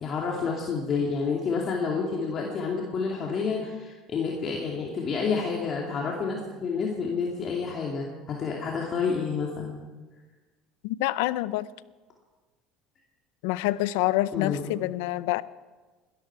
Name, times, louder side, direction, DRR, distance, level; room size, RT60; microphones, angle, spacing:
voice 1, 0.0-9.8 14.3-14.7, left 5 dB, 45° left, -2 dB, 2.6 m, -29 dB
voice 2, 10.8-11.7 13.4-15.4, left 17 dB, 85° left, 18 dB, 0.5 m, -27 dB
21.0 x 13.0 x 4.7 m, 1.3 s
supercardioid pair, 100°, 0 cm